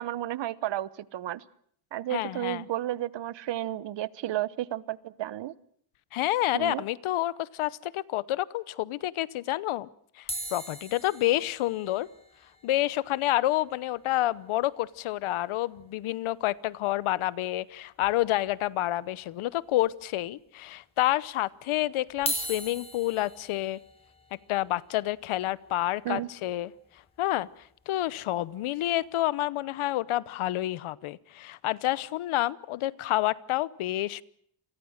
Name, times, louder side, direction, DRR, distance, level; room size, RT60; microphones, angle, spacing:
voice 1, 0.0-1.4 1.9-5.5 6.5-6.8 26.0-26.3, right 13 dB, 60° right, 19 dB, 1.0 m, -32 dB
voice 2, 2.1-2.7 6.1-9.9 10.2-12.1 12.6-23.8 24.5-26.7 27.2-27.5 27.9-34.2, left 15 dB, 85° left, 19 dB, 1.0 m, -29 dB
sound 1, 10.3-14.6 14.9-15.0 15.2-15.4 15.8-15.9 17.2-17.3 18.0-18.5 19.0-19.1 20.0-20.1 22.1-28.2 28.7-29.0, equal, 10° left, 5.3 m, -41 dB
28.5 x 23.5 x 6.5 m, 0.63 s
cardioid pair, 145°, 48 cm